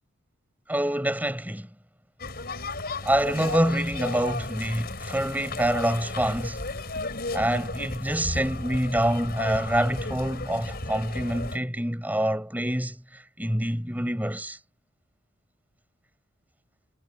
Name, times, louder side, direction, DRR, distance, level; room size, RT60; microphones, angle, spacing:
voice 1, 0.7-1.7 3.0-6.6 7.3-14.6, right 1 dB, 10° right, 5.4 m, -26 dB
sound 1, 2.2-11.6, left 2 dB, 45° left, 5.6 m, -34 dB
head